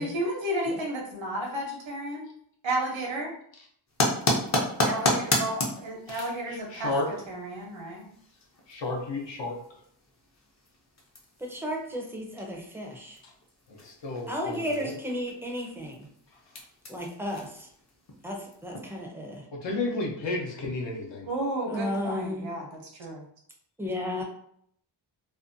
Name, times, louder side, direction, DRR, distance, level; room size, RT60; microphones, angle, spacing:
voice 1, 0.0-2.3 2.6-3.3 4.8-6.9 7.3-8.1 21.2-23.3, right 1 dB, 85° right, 0 dB, 0.8 m, -32 dB
sound 1, 3.9-19.0, left 1 dB, 40° left, 0.6 m, -34 dB
voice 2, 6.1-7.1 8.7-9.8 13.2-13.3 13.7-14.9 19.5-21.3, left 2 dB, 75° left, 0 dB, 0.7 m, -33 dB
voice 3, 11.4-13.2 14.3-16.1 16.9-17.7 18.2-19.4 21.7-22.5 23.8-24.2, left 1 dB, 5° right, 0 dB, 0.4 m, -33 dB
2.6 x 2.2 x 2.5 m, 0.67 s
wide cardioid pair, 140°, 45 cm